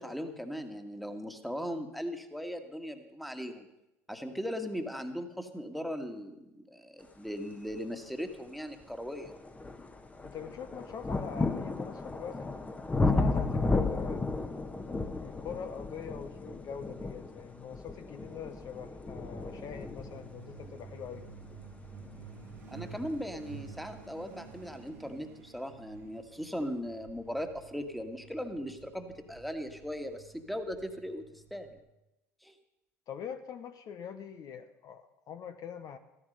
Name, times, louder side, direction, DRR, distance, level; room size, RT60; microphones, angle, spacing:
voice 1, 0.0-3.7 4.1-9.3 22.7-31.7 32.4-32.5, equal, ahead, 6 dB, 1.7 m, -38 dB
sound 1, 8.1-8.2 8.8-23.5 24.4-24.5, left 3 dB, 15° left, 1.2 m, -34 dB
voice 2, 10.2-12.5 12.9-14.3 15.2-21.3 33.1-36.0, left 7 dB, 50° left, 9 dB, 0.9 m, -43 dB
Truck, 19.5-31.8, right 6 dB, 85° right, 2.3 m, -51 dB
14.0 x 13.5 x 5.4 m, 0.92 s
hypercardioid pair, 70°, 8 cm